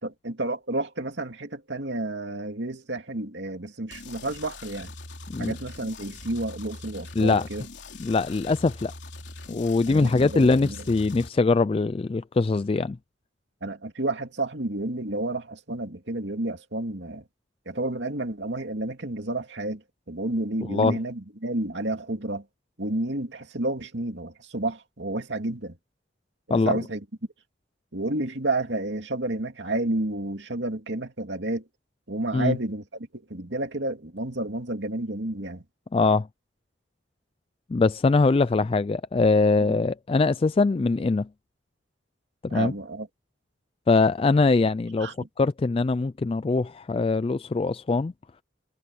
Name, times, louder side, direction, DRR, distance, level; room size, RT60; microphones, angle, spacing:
voice 1, 0.0-4.9 5.4-7.7 9.9-10.8 13.6-17.2 17.7-22.4 22.8-25.8 26.5-27.0 27.9-31.7 32.1-35.6 39.6-39.7 42.5-43.1 45.0-45.3, right 2 dB, 65° right, 2.6 m, -30 dB
sound 1, 3.9-11.3, left 2 dB, 65° left, 3.6 m, -42 dB
voice 2, 7.2-7.5 8.0-8.9 9.5-13.0 20.7-21.0 26.5-26.8 32.3-32.6 35.9-36.3 37.7-41.3 42.4-42.7 43.9-45.1 45.4-48.1, left 3 dB, 30° left, 0.3 m, -22 dB
head